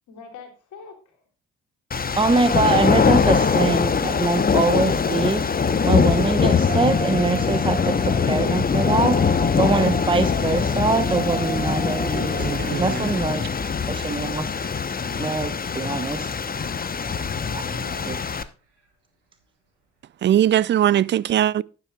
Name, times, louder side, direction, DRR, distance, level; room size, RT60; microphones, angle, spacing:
voice 1, 0.1-1.2 17.3-18.4, left 4 dB, 60° left, 3.3 m, -43 dB
sound 1, 1.9-18.4, left 5 dB, 25° left, 0.9 m, -22 dB
voice 2, 2.2-5.4 5.8-12.5 12.8-13.4 13.9-14.5 15.2-16.3 18.1-18.2, right 3 dB, 15° right, 1.0 m, -23 dB
sound 2, 6.7-15.1 17.8-17.9, right 6 dB, 90° right, 2.0 m, -36 dB
voice 3, 12.4-13.0 20.2-21.6, right 11 dB, 35° right, 0.4 m, -20 dB
12.0 x 9.8 x 2.3 m
figure-of-eight pair, 45°, 35 cm